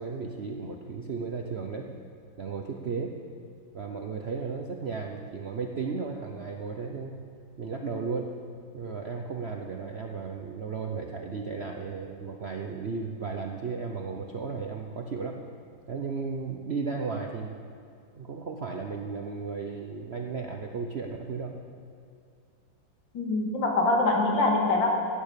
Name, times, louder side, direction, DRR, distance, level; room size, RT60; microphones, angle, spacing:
voice 1, 0.0-1.9 2.4-3.2 3.7-7.2 7.6-8.3 8.7-15.4 15.9-17.6 18.2-21.5, right 5 dB, 55° right, 2 dB, 0.7 m, -34 dB
voice 2, 23.1-24.9, left 2 dB, 70° left, 0 dB, 2.7 m, -24 dB
16.5 x 9.4 x 6.8 m, 2.5 s
omnidirectional pair, 2.1 m